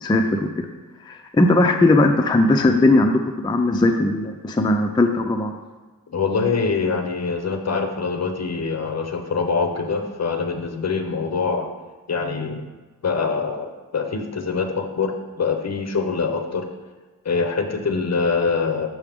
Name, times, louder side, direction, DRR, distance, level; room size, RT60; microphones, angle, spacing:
voice 1, 0.0-0.7 1.1-5.5, left 2 dB, 15° left, 4 dB, 0.3 m, -18 dB
voice 2, 6.1-11.7 12.1-12.7 13.0-15.1 15.4-16.6 17.2-18.9, left 4 dB, 50° left, 6 dB, 0.7 m, -24 dB
6.1 x 5.8 x 3.5 m, 1.3 s
wide cardioid pair, 120°, 35 cm